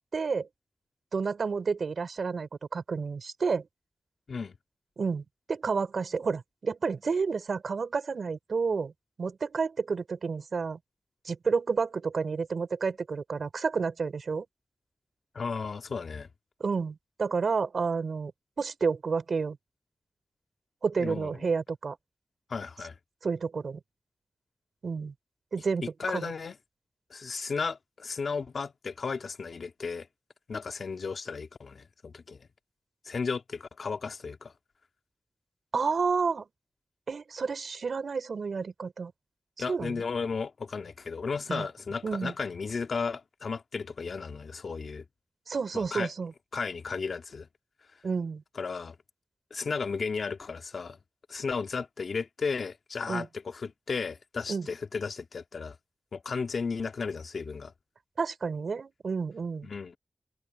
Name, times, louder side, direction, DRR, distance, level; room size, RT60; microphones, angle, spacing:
voice 1, 0.1-0.5 1.1-3.7 5.0-5.2 5.5-8.9 9.2-10.8 11.2-14.4 16.6-18.3 18.6-19.6 20.8-22.0 23.2-23.8 24.8-25.1 25.5-26.3 35.7-36.4 37.1-39.1 39.7-40.0 41.5-41.7 42.0-42.3 45.5-46.3 48.0-48.4 53.1-53.3 54.5-54.7 58.2-59.7, right 5 dB, 80° right, 5.0 m, -30 dB
voice 2, 15.3-16.3 21.0-21.4 22.5-23.0 26.0-26.6 27.1-30.1 30.5-32.5 33.1-34.5 39.6-45.0 45.7-46.1 46.5-47.5 48.6-49.0 49.5-51.0 51.3-55.8 56.1-57.7 59.6-60.0, left 5 dB, 75° left, 2.1 m, -34 dB
wide cardioid pair, 90°, 0 cm